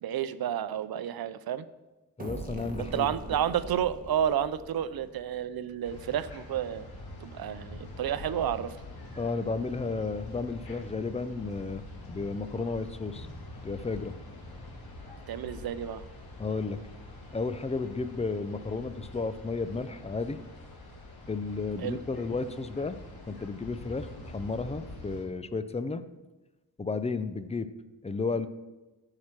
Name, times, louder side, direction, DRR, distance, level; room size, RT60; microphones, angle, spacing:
voice 1, 0.0-1.7 2.8-6.8 7.2-8.7 15.3-16.0 21.8-22.0, right 9 dB, 80° right, 14 dB, 0.6 m, -31 dB
voice 2, 2.2-3.1 9.2-13.3 13.6-14.1 16.4-16.8 17.3-20.4 21.3-23.0 23.3-26.0 26.8-27.7 28.0-28.5, left 4 dB, 20° left, 12 dB, 0.5 m, -33 dB
sound 1, 2.2-5.8, right 2 dB, 25° right, 1.5 m, -42 dB
sound 2, 5.8-25.2, left 2 dB, 85° left, 2.6 m, -45 dB
14.0 x 4.9 x 5.9 m, 1.1 s
wide cardioid pair, 100°, 36 cm